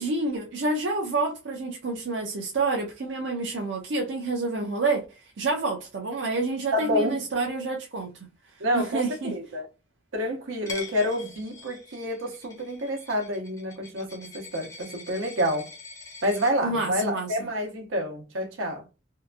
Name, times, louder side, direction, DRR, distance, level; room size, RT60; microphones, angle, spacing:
voice 1, 0.0-8.3 8.7-9.4 16.6-17.5, right 3 dB, 60° right, 0.5 m, -28 dB
voice 2, 6.7-7.2 8.6-9.7 10.1-15.7 16.2-18.8, equal, 85° right, 0.9 m, -28 dB
Coin (dropping), 10.7-16.5, left 3 dB, 15° left, 0.5 m, -44 dB
2.7 x 2.5 x 2.3 m
head